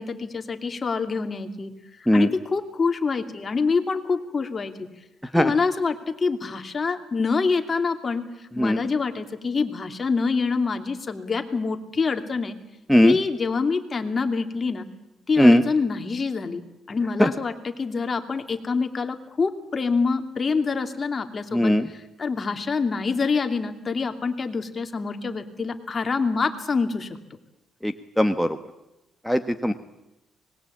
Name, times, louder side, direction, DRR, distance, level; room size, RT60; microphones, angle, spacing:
voice 1, 0.0-1.7 2.1-4.9 5.3-8.2 8.6-12.6 13.0-14.9 15.3-16.6 16.9-27.1, left 4 dB, 35° left, 6 dB, 2.7 m, -26 dB
voice 2, 21.5-21.9 27.8-28.5 29.3-29.7, equal, ahead, 6 dB, 1.2 m, -18 dB
25.0 x 20.5 x 8.7 m, 0.92 s
cardioid pair, 100°, 0 cm